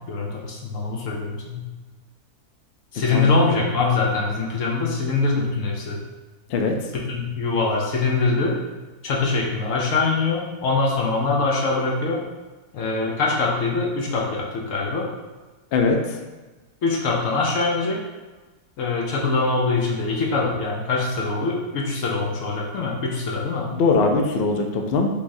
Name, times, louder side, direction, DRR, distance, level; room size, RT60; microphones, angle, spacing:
voice 1, 0.0-1.6 2.9-6.0 6.9-8.5 9.0-12.2 12.7-15.1 16.8-18.0 18.8-23.7, left 3 dB, 65° left, -2 dB, 1.0 m, -23 dB
voice 2, 23.8-25.1, left 4 dB, 80° left, 3 dB, 0.5 m, -20 dB
5.2 x 3.4 x 2.6 m, 1.2 s
omnidirectional pair, 1.7 m